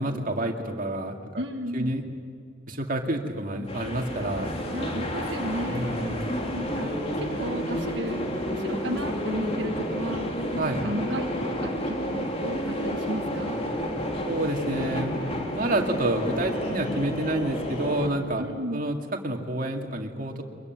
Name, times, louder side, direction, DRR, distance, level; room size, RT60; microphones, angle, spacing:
voice 1, 0.0-1.4 1.7-2.0 2.7-4.5 5.0-5.1 5.7-6.3 10.6-10.8 14.2-15.2 15.6-18.4 18.7-19.0 19.2-20.4, right 1 dB, 45° right, 3 dB, 2.3 m, -28 dB
voice 2, 1.4-2.0 4.7-5.9 6.5-10.3 10.8-13.6 18.4-18.8, right 1 dB, 65° right, 2 dB, 1.5 m, -34 dB
sound 1, 3.7-18.1, equal, 30° left, 3.5 m, -30 dB
24.0 x 22.0 x 9.4 m, 2.3 s
head